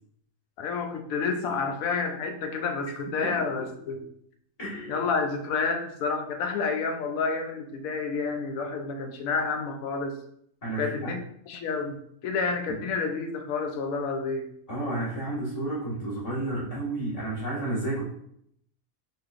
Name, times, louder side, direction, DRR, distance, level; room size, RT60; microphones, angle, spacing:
voice 1, 0.6-4.1 4.9-10.2 10.8-14.5, left 4 dB, 70° left, 5 dB, 1.0 m, -29 dB
voice 2, 3.2-3.7 4.6-5.0 10.6-11.1 14.7-18.1, right 2 dB, 25° left, -8 dB, 1.6 m, -31 dB
4.5 x 3.2 x 2.4 m, 0.70 s
omnidirectional pair, 1.5 m